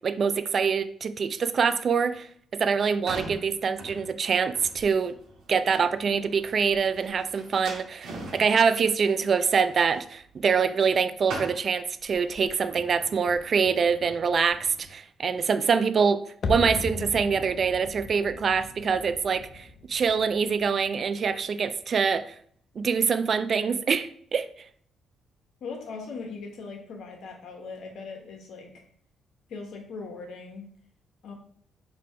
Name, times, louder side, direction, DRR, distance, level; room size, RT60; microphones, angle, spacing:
voice 1, 0.0-5.1 5.5-22.4 22.8-24.5, right 6 dB, 50° right, 0.3 m, -25 dB
sound 1, 2.6-11.0 11.2-14.9, right 2 dB, 85° right, 1.6 m, -43 dB
sound 2, 16.4-21.4 21.6-21.7, left 3 dB, 55° left, 0.6 m, -37 dB
voice 2, 25.6-28.7 29.5-30.6 31.2-31.3, left 4 dB, 70° left, 1.1 m, -39 dB
3.9 x 2.8 x 4.7 m
cardioid pair, 90°, 0 cm